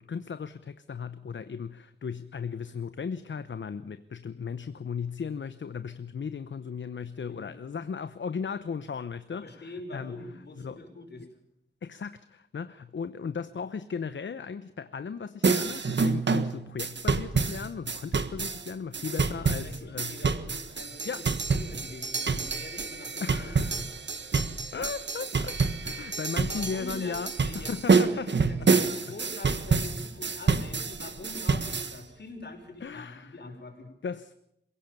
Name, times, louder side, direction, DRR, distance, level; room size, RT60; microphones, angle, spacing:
voice 1, 0.0-10.3 10.6-10.8 11.2-11.3 11.8-20.2 21.0-21.3 23.2-23.8 24.7-28.3 28.6-28.7 32.8-33.4 34.0-34.3, left 6 dB, 80° left, 12 dB, 0.9 m, -36 dB
voice 2, 9.4-11.3 19.0-23.9 26.5-33.9, left 2 dB, 65° left, 3 dB, 5.9 m, -44 dB
sound 1, 15.4-32.0, right 4 dB, 70° right, 1.5 m, -28 dB
27.5 x 17.0 x 7.0 m, 0.79 s
wide cardioid pair, 85°, 19 cm